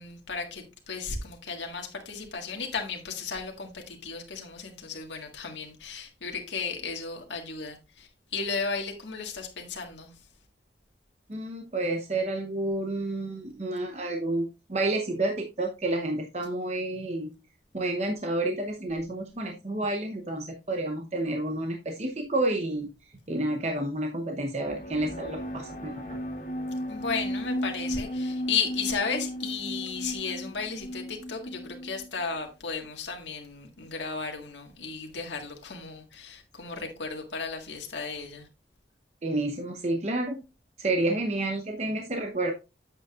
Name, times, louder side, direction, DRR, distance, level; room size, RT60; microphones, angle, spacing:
voice 1, 0.0-10.1 26.9-38.5, left 5 dB, 85° left, 1.7 m, -34 dB
voice 2, 11.3-17.3 17.7-22.9 23.3-25.9 39.2-40.4 40.8-42.5, right 2 dB, 40° right, 0.8 m, -30 dB
sound 1, 24.6-32.2, equal, 45° left, 2.2 m, -35 dB
8.5 x 7.7 x 2.4 m
head